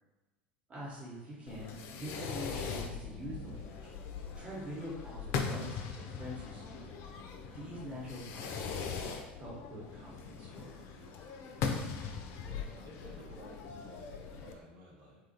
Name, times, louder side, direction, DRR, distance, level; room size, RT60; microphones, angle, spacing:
voice 1, 0.7-3.6 4.4-6.9 7.4-9.0 9.4-10.8, equal, 20° right, -6 dB, 0.9 m, -45 dB
Fireworks, 1.5-14.5, left 5 dB, 50° left, 0.3 m, -40 dB
voice 2, 7.6-8.0 11.7-15.2, equal, 50° right, -6 dB, 1.0 m, -54 dB
2.7 x 2.3 x 2.6 m, 1.2 s
figure-of-eight pair, 75°, 6 cm